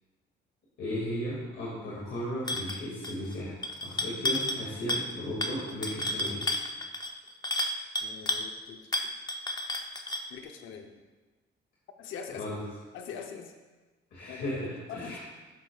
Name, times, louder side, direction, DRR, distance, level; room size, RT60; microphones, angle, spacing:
voice 1, 0.8-3.6 3.8-6.4 12.3-12.6 14.1-15.2, equal, 65° left, -6 dB, 2.2 m, -35 dB
sound 1, 2.5-2.8 3.0-3.3 3.6-4.6 4.9-5.1 5.4-8.5 8.9-10.3, left 1 dB, 20° left, 0.7 m, -31 dB
voice 2, 8.0-9.1 10.3-10.9 12.0-12.5 12.9-13.5 14.3-14.5 14.9-15.2, left 7 dB, 85° left, 4 dB, 0.8 m, -43 dB
12.0 x 7.5 x 2.4 m, 1.3 s
cardioid pair, 90°, 20 cm